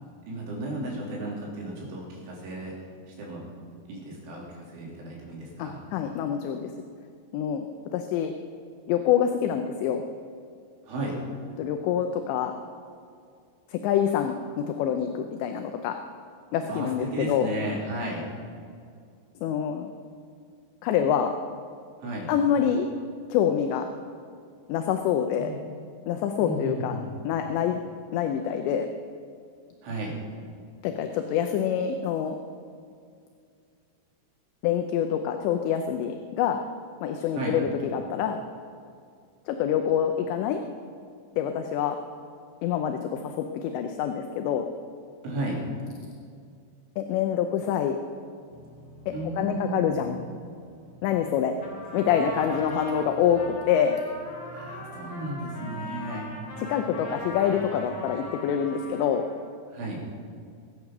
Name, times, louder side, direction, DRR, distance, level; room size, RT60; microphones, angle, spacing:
voice 1, 0.3-2.7 3.1-3.4 3.9-5.8 10.9-11.2 16.7-18.3 22.0-22.3 25.4-25.6 26.4-27.1 29.8-30.2 37.4-37.6 45.2-45.6 49.1-49.9 54.5-56.3 59.7-60.0, right 1 dB, 80° right, -3 dB, 5.6 m, -34 dB
voice 2, 5.6-6.7 7.3-7.7 7.9-8.3 8.9-10.0 11.6-12.5 13.7-15.9 16.5-17.5 19.4-19.9 20.8-21.3 22.3-22.9 23.3-23.9 24.7-25.5 26.1-27.0 27.2-27.8 28.1-28.9 30.8-32.4 34.6-36.6 37.0-38.4 39.5-40.6 41.4-42.0 42.6-44.6 47.0-48.0 49.4-50.2 51.0-51.6 51.9-54.0 56.6-59.2, left 9 dB, 80° left, 6 dB, 2.8 m, -26 dB
sound 1, 48.5-58.3, right 4 dB, 50° right, 2.5 m, -47 dB
Trumpet, 51.6-59.4, left 1 dB, 35° left, 3.7 m, -40 dB
23.0 x 9.1 x 6.0 m, 2.3 s
omnidirectional pair, 5.4 m